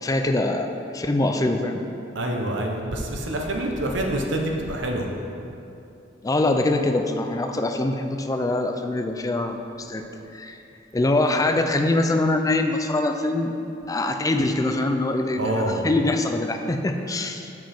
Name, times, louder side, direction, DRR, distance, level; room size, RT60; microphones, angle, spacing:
voice 1, 0.0-1.8 6.2-10.0 10.3-10.6 10.9-13.5 13.9-17.5, left 2 dB, 20° left, 5 dB, 0.4 m, -23 dB
voice 2, 2.1-5.1 15.4-15.8, right 1 dB, 85° right, 1 dB, 0.9 m, -26 dB
7.1 x 6.0 x 4.3 m, 2.8 s
head